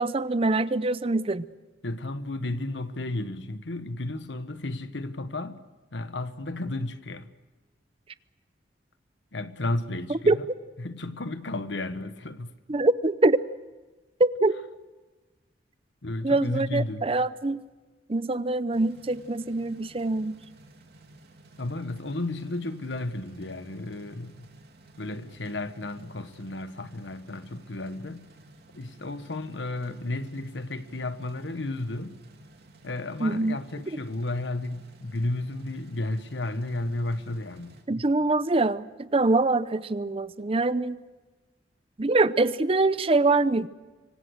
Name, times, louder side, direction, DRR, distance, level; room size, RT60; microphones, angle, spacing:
voice 1, 0.0-1.5 10.3-10.4 12.7-13.4 14.2-14.6 16.2-17.6 18.1-20.4 33.2-33.6 37.9-41.0 42.0-43.7, right 2 dB, 30° right, 0.7 m, -24 dB
voice 2, 1.8-5.6 5.9-7.3 9.3-10.4 10.8-12.5 16.0-17.1 21.6-24.5 25.0-28.3 28.7-32.2 32.8-37.8, left 2 dB, 85° left, 1.3 m, -33 dB
sound 1, 18.7-37.8, right 2 dB, 60° right, 3.4 m, -54 dB
26.0 x 24.0 x 6.4 m
head